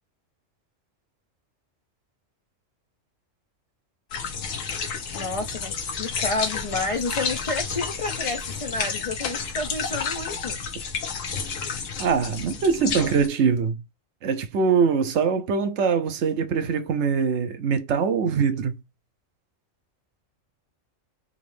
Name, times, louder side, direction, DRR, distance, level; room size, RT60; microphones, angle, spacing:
sound 1, 4.1-13.3, left 5 dB, 80° left, 1.2 m, -31 dB
voice 1, 5.1-10.6, left 2 dB, 45° left, 0.4 m, -30 dB
voice 2, 12.0-13.8 14.2-18.8, right 6 dB, 65° right, 0.9 m, -23 dB
4.0 x 3.1 x 3.2 m
omnidirectional pair, 1.3 m